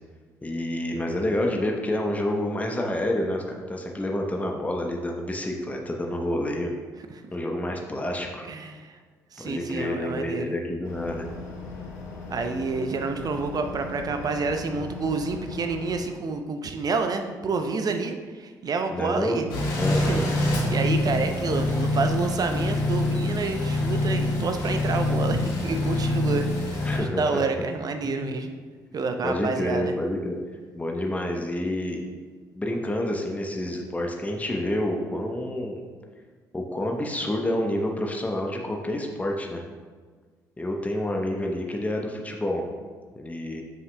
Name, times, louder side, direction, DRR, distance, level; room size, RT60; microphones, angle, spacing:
voice 1, 0.4-6.7 7.3-8.5 9.4-11.3 18.9-19.4 19.8-20.2 26.8-27.4 28.0-28.3 29.2-30.4 30.7-32.0 32.5-35.8 36.5-39.6 40.6-42.7 43.2-43.6, left 1 dB, 15° left, 1 dB, 0.9 m, -28 dB
voice 2, 8.4-9.0 9.3-10.5 12.3-19.5 20.0-28.5 28.9-29.9, right 4 dB, 45° right, 6 dB, 0.6 m, -29 dB
sound 1, 10.8-16.0, left 4 dB, 85° left, 0.7 m, -38 dB
sound 2, 19.5-27.0, left 1 dB, 60° left, 1.6 m, -25 dB
7.5 x 5.5 x 2.3 m, 1.5 s
hypercardioid pair, 45°, 9 cm